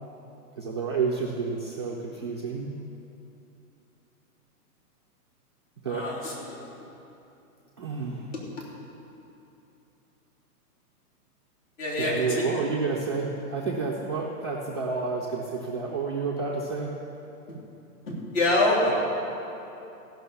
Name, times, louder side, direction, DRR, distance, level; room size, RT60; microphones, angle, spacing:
voice 1, 0.6-2.7 5.8-6.1 7.8-8.3 12.0-16.9, right 4 dB, 20° right, -6 dB, 0.3 m, -30 dB
voice 2, 5.9-6.6 11.8-12.6 17.5-17.6 18.1-18.9, left 2 dB, 50° left, -4 dB, 3.3 m, -26 dB
15.0 x 6.0 x 6.9 m, 2.9 s
hypercardioid pair, 150°, 46 cm